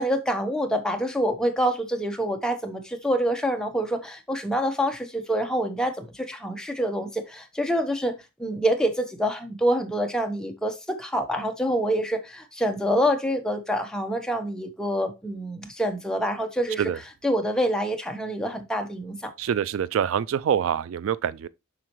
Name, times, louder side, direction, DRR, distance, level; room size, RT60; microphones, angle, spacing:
voice 1, 0.0-8.1 8.4-16.9 17.2-19.3, equal, 5° left, 0.9 m, -26 dB
voice 2, 19.4-21.5, right 8 dB, 70° right, 0.3 m, -25 dB
7.5 x 5.5 x 3.0 m
head